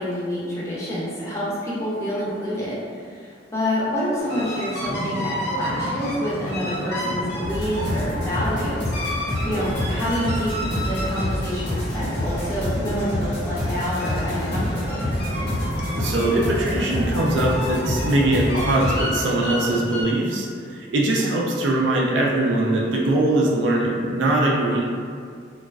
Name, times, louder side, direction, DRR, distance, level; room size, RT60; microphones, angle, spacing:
voice 1, 0.0-15.1 21.2-21.4, equal, 15° left, -8 dB, 0.5 m, -28 dB
sound 1, 4.2-20.0, equal, 60° left, 0.6 m, -31 dB
sound 2, 7.4-19.0, left 1 dB, 80° left, 1.1 m, -27 dB
voice 2, 16.0-20.5 20.7-24.9, right 1 dB, 80° right, -3 dB, 0.4 m, -21 dB
2.3 x 2.3 x 2.3 m, 2.2 s
head